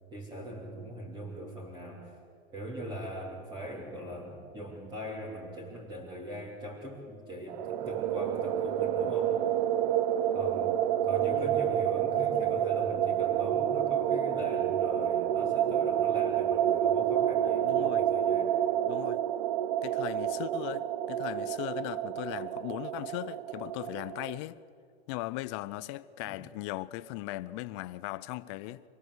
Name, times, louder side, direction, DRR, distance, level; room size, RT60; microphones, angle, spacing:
voice 1, 0.1-2.2 2.5-9.4 10.3-18.6 26.2-26.4, equal, 15° right, 3.3 m, -41 dB
sound 1, 7.5-24.4, right 10 dB, 40° right, 0.7 m, -29 dB
voice 2, 11.2-11.5 12.1-12.6 17.6-18.0 18.8-19.2 19.8-24.6 25.1-28.8, left 18 dB, 30° left, 0.5 m, -38 dB
25.5 x 18.0 x 8.2 m
hypercardioid pair, 145°, 32 cm